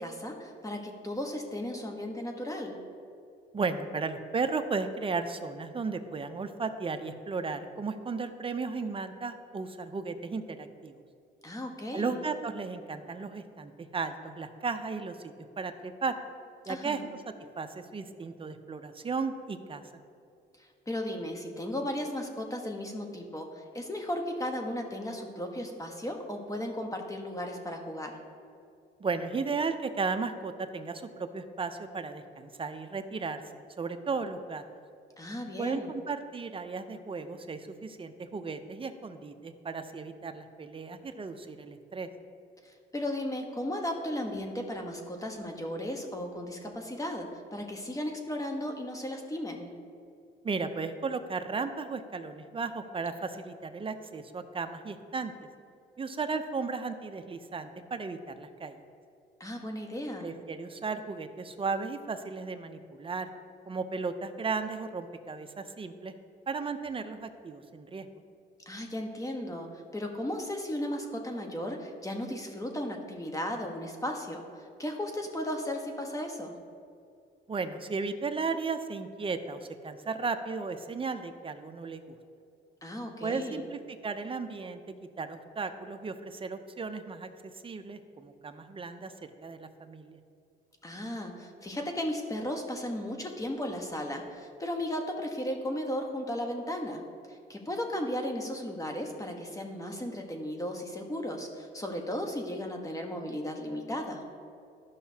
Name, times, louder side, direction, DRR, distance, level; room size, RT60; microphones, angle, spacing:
voice 1, 0.0-2.8 11.4-12.2 16.6-17.1 20.9-28.2 35.2-35.9 42.6-49.7 59.4-60.3 68.7-76.6 82.8-83.6 90.8-97.0 97.3-104.2, left 1 dB, 15° left, 3 dB, 1.1 m, -35 dB
voice 2, 3.5-10.9 11.9-16.1 16.7-17.0 17.6-19.8 29.0-33.4 33.8-34.6 35.6-42.1 50.4-55.3 56.0-58.8 60.2-63.3 63.7-66.1 66.5-68.1 77.5-82.2 83.2-84.8 85.2-87.3 87.6-89.1 89.4-90.2, right 4 dB, 25° right, 8 dB, 0.6 m, -35 dB
13.0 x 5.6 x 2.8 m, 2.5 s
cardioid pair, 90°, 20 cm